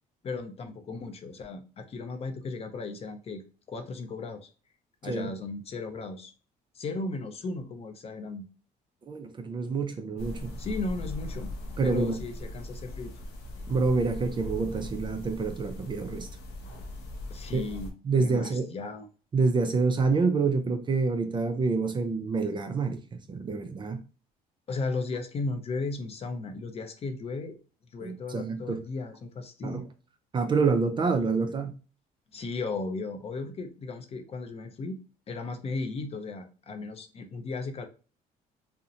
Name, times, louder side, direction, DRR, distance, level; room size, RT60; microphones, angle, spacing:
voice 1, 0.2-3.4 3.7-4.5 5.0-6.3 6.8-8.5 10.6-11.5 11.8-13.1 17.3-19.1 24.7-27.6 27.9-29.9 32.3-35.0 35.3-37.9, left 3 dB, 35° left, 7 dB, 0.5 m, -35 dB
voice 2, 9.1-10.5 11.8-12.1 13.7-16.3 17.5-17.6 18.0-18.7 19.3-24.0 28.0-28.8 29.6-29.8 30.3-31.8, right 4 dB, 30° right, 7 dB, 0.4 m, -27 dB
sound 1, 10.2-17.9, left 1 dB, 85° left, 0.6 m, -39 dB
2.8 x 2.0 x 2.5 m, 0.35 s
cardioid pair, 110°, 17 cm